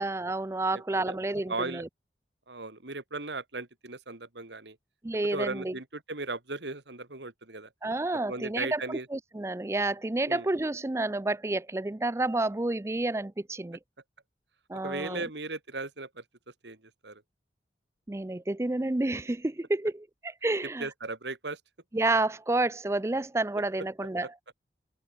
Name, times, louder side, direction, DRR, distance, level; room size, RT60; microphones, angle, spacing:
voice 1, 0.0-1.9 5.0-5.7 7.8-13.8 14.7-15.2 18.1-20.9 21.9-24.3, right 2 dB, 15° right, 0.4 m, -30 dB
voice 2, 0.7-1.8 2.5-4.8 5.3-7.7 8.3-9.1 10.3-10.5 14.7-16.2 16.6-17.2 20.8-21.6 24.2-24.3, right 3 dB, 75° right, 2.7 m, -37 dB
head